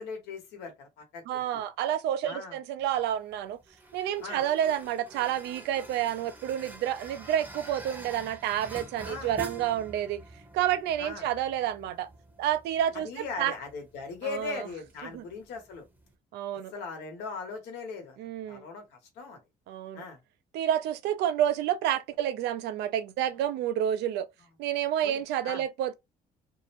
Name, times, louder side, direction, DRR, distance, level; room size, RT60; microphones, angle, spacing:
voice 1, 0.0-1.6 2.2-2.6 4.2-4.4 9.1-9.3 11.0-11.3 12.9-15.8 16.7-18.2 18.5-19.4 19.9-20.2 25.0-25.6, left 4 dB, 85° left, 1.1 m, -39 dB
voice 2, 1.3-3.6 3.9-10.2 10.5-12.1 12.4-13.5 14.2-14.6 15.1-15.2 16.3-16.7 18.2-18.6 19.7-20.0 20.5-24.3 24.6-25.9, right 11 dB, 80° right, 0.5 m, -29 dB
sound 1, 2.8-16.1, right 2 dB, 10° right, 0.7 m, -47 dB
2.6 x 2.1 x 2.8 m
cardioid pair, 110°, 17 cm